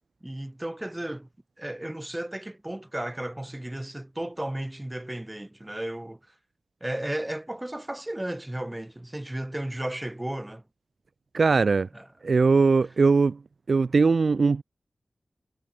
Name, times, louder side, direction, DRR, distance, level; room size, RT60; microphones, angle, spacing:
voice 1, 0.2-1.3 1.6-6.2 6.8-10.6 11.9-12.0, right 1 dB, 15° right, 1.2 m, -34 dB
voice 2, 11.3-11.9 12.2-13.4 13.7-14.6, right 4 dB, 65° right, 0.4 m, -20 dB
wide cardioid pair, 110°, 0 cm